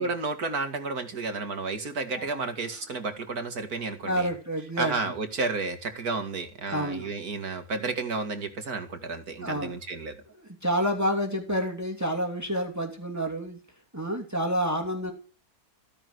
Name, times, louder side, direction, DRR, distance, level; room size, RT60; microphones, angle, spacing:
voice 1, 0.0-4.3 4.8-10.1, right 3 dB, 70° right, 8 dB, 2.7 m, -32 dB
voice 2, 4.0-4.9 6.7-7.1 9.4-9.7 10.3-13.6 13.9-15.1, equal, 10° right, 3 dB, 2.9 m, -29 dB
16.0 x 10.5 x 8.0 m, 0.37 s
omnidirectional pair, 1.7 m